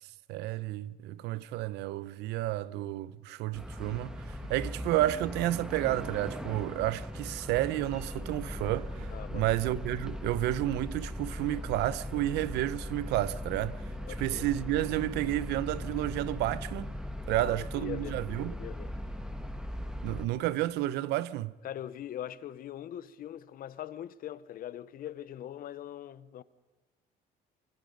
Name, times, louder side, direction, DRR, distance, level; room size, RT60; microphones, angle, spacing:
voice 1, 0.3-13.9 14.2-17.0 17.3-18.5 20.0-21.5, right 15 dB, 85° right, 0.7 m, -31 dB
sound 1, 3.5-20.3, left 1 dB, 5° right, 1.7 m, -39 dB
sound 2, 5.6-16.0, right 1 dB, 20° right, 4.9 m, -57 dB
voice 2, 9.1-9.4 14.1-14.5 17.3-18.2 18.5-18.9 21.6-26.4, left 11 dB, 60° left, 0.9 m, -42 dB
25.0 x 23.5 x 5.3 m
cardioid pair, 110°, 17 cm